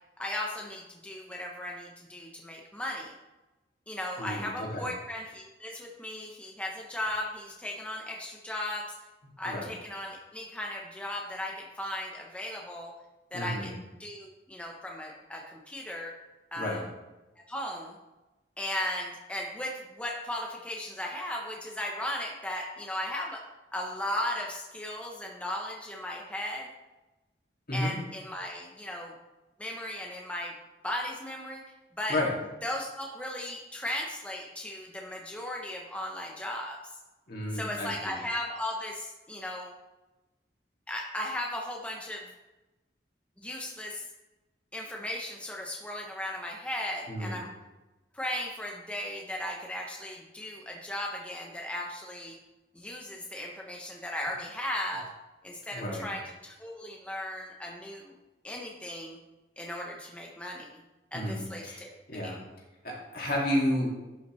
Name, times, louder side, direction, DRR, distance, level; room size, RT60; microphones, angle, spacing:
voice 1, 0.2-3.1 3.9-8.9 9.4-12.9 13.3-13.7 14.0-16.1 16.5-16.9 17.5-18.0 18.6-23.4 23.7-26.7 27.7-29.1 29.6-30.5 30.8-31.6 32.0-32.2 32.6-37.0 37.5-39.7 40.9-42.3 43.4-44.0 44.7-47.5 48.1-52.4 52.7-55.1 55.4-58.1 58.4-59.2 59.6-60.7 61.1-62.5, left 1 dB, 5° left, -1 dB, 0.7 m, -36 dB
voice 2, 4.2-4.9 9.4-9.7 13.3-13.7 16.6-16.8 27.7-28.0 32.1-32.3 37.3-38.2 47.1-47.4 55.7-56.1 61.1-61.8 62.1-62.4 62.8-63.9, left 1 dB, 55° left, -3 dB, 2.2 m, -31 dB
11.0 x 5.7 x 3.1 m, 1.1 s
head